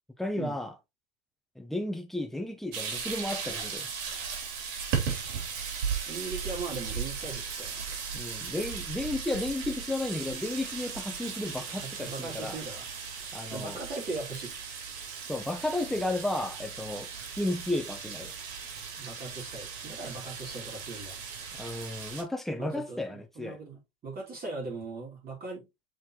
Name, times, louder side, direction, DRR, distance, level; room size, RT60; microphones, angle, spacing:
voice 1, 0.2-0.7 1.6-3.9 8.1-12.6 13.3-13.8 15.3-17.1 17.4-18.3 21.6-23.6, left 1 dB, ahead, 0.8 m, -33 dB
sound 1, 2.7-22.2, right 6 dB, 70° right, 2.9 m, -37 dB
voice 2, 6.1-7.8 11.7-12.9 13.5-14.5 19.0-21.2 22.6-25.7, right 3 dB, 30° right, 3.0 m, -39 dB
7.6 x 4.2 x 2.9 m
supercardioid pair, 130°, 32 cm